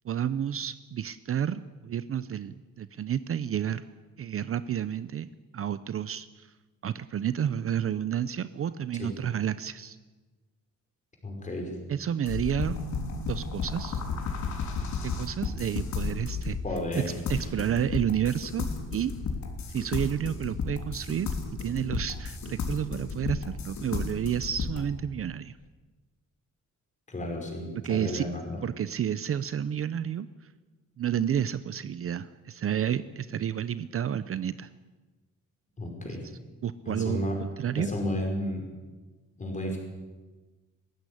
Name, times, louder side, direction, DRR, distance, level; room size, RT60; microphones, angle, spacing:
voice 1, 0.0-3.8 4.2-6.5 6.8-10.0 11.9-12.8 13.3-14.0 15.2-16.6 17.0-19.1 19.7-21.3 21.6-25.6 27.8-28.2 28.6-30.3 31.0-34.7 36.1-36.2 36.6-37.9, right 9 dB, 45° right, 14 dB, 0.6 m, -30 dB
voice 2, 11.2-11.7 16.6-17.1 27.1-28.6 35.8-36.2 36.9-37.4 37.8-38.7 39.4-39.8, left 1 dB, 25° left, 1 dB, 5.3 m, -32 dB
sound 1, 12.3-24.8, left 4 dB, 70° left, 3.5 m, -33 dB
20.0 x 16.0 x 10.0 m, 1.3 s
wide cardioid pair, 170°, 30 cm